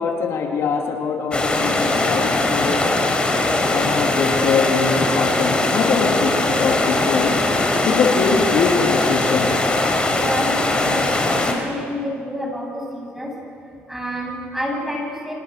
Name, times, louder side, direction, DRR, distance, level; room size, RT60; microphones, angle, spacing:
voice 1, 0.0-2.9 3.7-7.5 7.8-9.6, left 5 dB, 70° left, 2 dB, 3.1 m, -22 dB
sound 1, 1.3-11.5, left 2 dB, 20° left, 4.6 m, -20 dB
voice 2, 9.8-13.4 13.9-15.3, equal, 5° right, 0 dB, 7.8 m, -28 dB
28.5 x 26.0 x 7.0 m, 2.4 s
cardioid pair, 105°, 5 cm